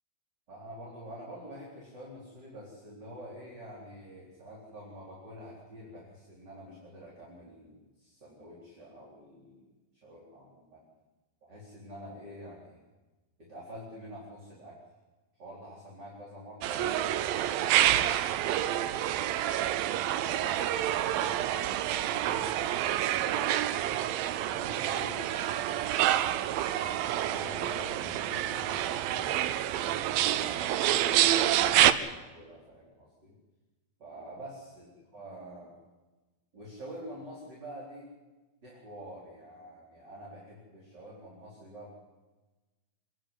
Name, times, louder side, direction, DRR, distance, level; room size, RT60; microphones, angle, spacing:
voice 1, 0.5-9.6 10.0-10.8 11.4-12.8 13.4-14.8 15.3-19.1 20.0-26.1 26.7-29.5 29.9-33.4 34.0-34.9 35.1-35.8 36.5-38.1 38.6-42.0, equal, 25° right, -4 dB, 4.6 m, -47 dB
sound 1, 16.6-31.9, right 12 dB, 80° right, 2.5 m, -28 dB
28.0 x 11.5 x 9.8 m, 1.2 s
omnidirectional pair, 4.2 m